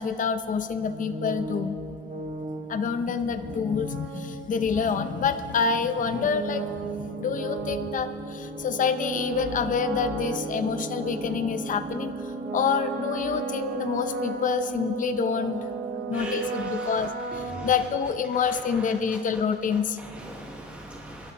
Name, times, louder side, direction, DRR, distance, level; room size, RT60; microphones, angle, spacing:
voice 1, 0.0-1.8 2.7-15.6 16.1-20.0, left 6 dB, 40° left, 9 dB, 0.7 m, -27 dB
sound 1, 0.8-18.4, right 3 dB, 45° right, 1.1 m, -35 dB
voice 2, 16.1-17.1 17.5-17.7 18.4-18.8 20.0-21.3, right 1 dB, 5° right, -1 dB, 1.1 m, -40 dB
26.0 x 11.5 x 3.0 m, 2.7 s
cardioid pair, 90°, 20 cm